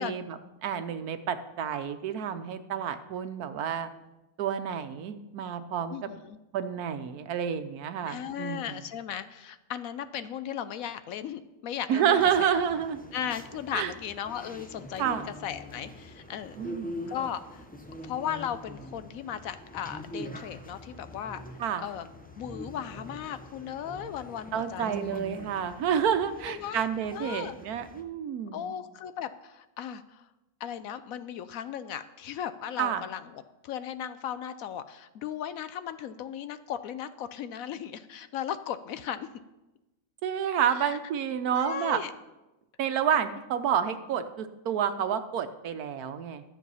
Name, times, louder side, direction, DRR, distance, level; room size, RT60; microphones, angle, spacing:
voice 1, 0.0-3.9 4.4-6.1 6.5-8.7 11.9-13.0 13.7-13.9 15.0-15.3 16.6-17.1 21.6-21.8 24.5-28.7 32.8-33.0 40.2-42.0 42.8-46.4, right 8 dB, 75° right, 10 dB, 1.2 m, -29 dB
voice 2, 5.9-6.4 8.1-12.5 13.1-16.6 17.1-17.6 18.0-21.4 21.8-22.1 22.4-25.2 26.5-26.8 27.1-27.5 28.5-30.2 30.6-39.3 40.8-41.0 41.5-42.1, left 9 dB, 70° left, 12 dB, 0.9 m, -36 dB
sound 1, 12.2-28.0, equal, 15° left, 0.3 m, -44 dB
12.0 x 7.5 x 5.5 m, 1.0 s
omnidirectional pair, 1.6 m